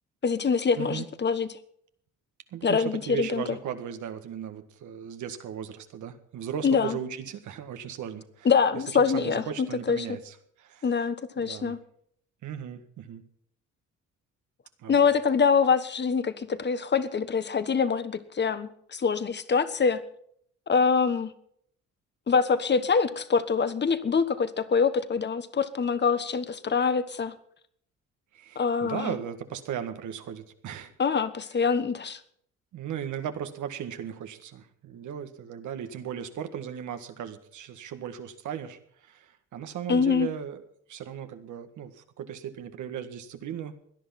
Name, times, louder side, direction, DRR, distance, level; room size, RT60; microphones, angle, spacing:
voice 1, 0.2-1.6 2.6-3.4 6.6-7.0 8.4-9.4 9.9-10.0 10.8-11.8 14.9-20.0 20.7-21.3 22.3-27.3 28.5-29.1 31.0-32.2 39.9-40.3, left 5 dB, 35° left, 13 dB, 1.3 m, -25 dB
voice 2, 0.8-1.1 2.5-8.5 9.1-10.9 11.4-11.8 12.4-13.2 14.8-15.1 28.3-30.9 32.7-43.7, right 9 dB, 75° right, 8 dB, 1.8 m, -37 dB
17.5 x 11.0 x 5.9 m, 0.65 s
cardioid pair, 90°, 30 cm